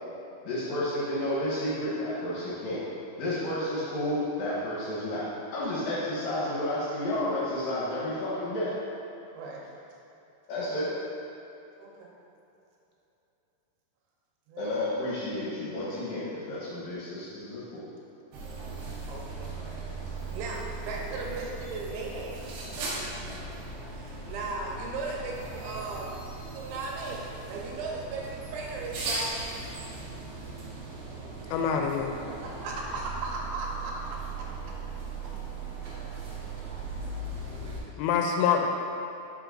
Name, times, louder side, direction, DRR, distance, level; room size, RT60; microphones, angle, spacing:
voice 1, 0.4-2.8 3.2-8.7 10.5-10.9 14.6-17.9, left 1 dB, 70° left, -8 dB, 2.3 m, -31 dB
voice 2, 9.3-9.7 10.8-11.0 11.8-12.1 14.5-14.7 19.1-19.5 20.3-23.3 23.9-26.1 26.4-29.3 32.4-34.2 37.4-37.8 38.4-38.7, right 3 dB, 85° right, -2 dB, 3.3 m, -37 dB
sound 1, 18.3-37.8, right 3 dB, 70° right, 2.4 m, -38 dB
voice 3, 31.5-32.1 38.0-38.7, left 7 dB, 85° left, 2 dB, 2.7 m, -25 dB
9.8 x 5.6 x 2.5 m, 3.0 s
omnidirectional pair, 5.1 m